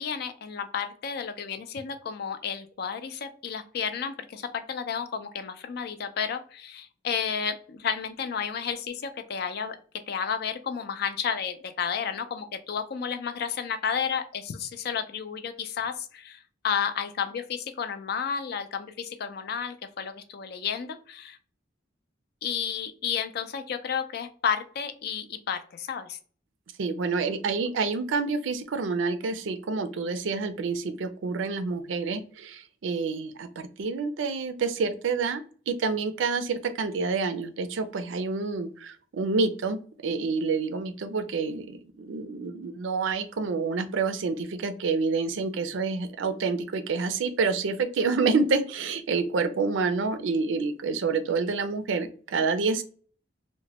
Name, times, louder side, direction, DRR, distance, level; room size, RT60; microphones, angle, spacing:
voice 1, 0.0-9.8 10.1-21.4 22.4-26.2, left 7 dB, 55° left, 9 dB, 0.4 m, -32 dB
voice 2, 26.8-39.8 40.0-52.8, right 4 dB, 80° right, 9 dB, 0.4 m, -28 dB
2.9 x 2.1 x 2.8 m, 0.42 s
head